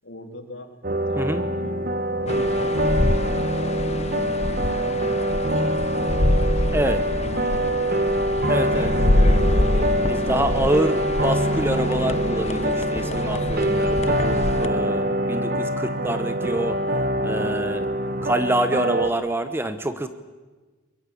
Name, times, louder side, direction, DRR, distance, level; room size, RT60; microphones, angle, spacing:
voice 1, 0.0-0.7 1.1-6.8 7.1-8.0 8.4-9.6, left 1 dB, 60° left, 4 dB, 3.7 m, -42 dB
sound 1, 0.8-19.1, right 1 dB, 45° right, 1.3 m, -24 dB
voice 2, 1.2-1.5 6.7-7.0 8.5-8.9 10.1-16.8 17.2-17.8 18.2-20.1, right 1 dB, 10° right, 10 dB, 1.0 m, -26 dB
sound 2, 2.3-14.7, left 1 dB, 30° left, 0.8 m, -25 dB
23.5 x 22.5 x 8.6 m, 1.3 s
head